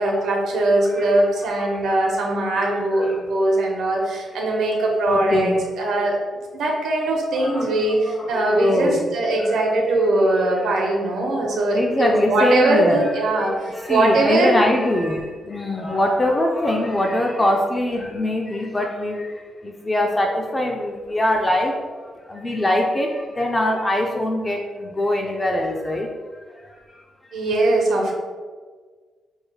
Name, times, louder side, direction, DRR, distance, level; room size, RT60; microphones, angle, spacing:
voice 1, 0.0-6.2 6.5-14.6 27.3-28.1, right 2 dB, 80° right, -1 dB, 1.0 m, -21 dB
voice 2, 0.8-1.2 1.6-2.1 2.6-3.3 5.1-5.6 7.3-9.1 9.4-9.6 9.9-10.0 10.5-10.9 11.7-27.0, left 1 dB, 20° left, 1 dB, 0.4 m, -24 dB
6.2 x 3.2 x 2.3 m, 1.5 s
cardioid pair, 125°, 0 cm